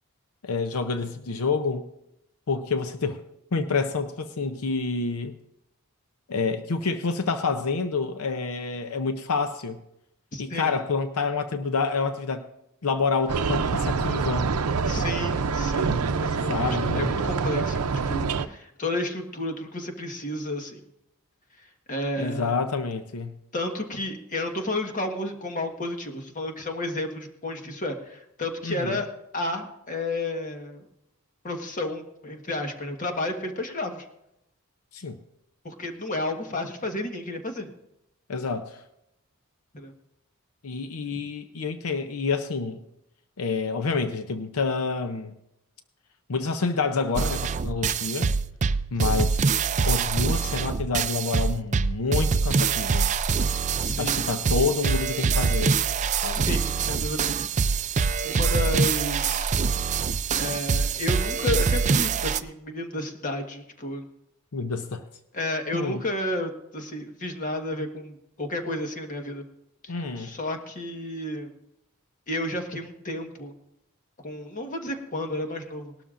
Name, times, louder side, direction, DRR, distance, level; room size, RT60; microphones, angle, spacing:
voice 1, 0.4-1.8 2.5-3.2 3.5-5.3 6.3-9.8 10.4-12.4 12.8-14.5 16.5-17.1 22.2-23.4 28.6-29.0 34.9-35.2 38.3-38.8 40.6-42.8 43.4-45.3 46.3-48.3 48.9-49.4 49.8-53.1 54.0-55.8 56.2-56.4 64.5-65.1 65.7-66.0 69.9-70.3, left 4 dB, 80° left, 9 dB, 0.7 m, -28 dB
voice 2, 10.3-10.7 14.8-20.8 21.9-22.6 23.5-29.1 29.3-30.9 31.4-34.0 35.6-37.7 39.7-39.9 49.0-49.2 53.8-54.2 56.3-57.4 58.2-59.6 60.4-64.0 65.3-69.4 69.8-71.5 72.3-73.5 74.2-75.9, left 1 dB, 35° left, 4 dB, 1.4 m, -32 dB
sound 1, 13.3-18.5, right 5 dB, 90° right, 0.6 m, -26 dB
sound 2, 47.1-62.4, right 5 dB, 35° right, 0.4 m, -24 dB
19.0 x 12.5 x 2.5 m, 0.83 s
head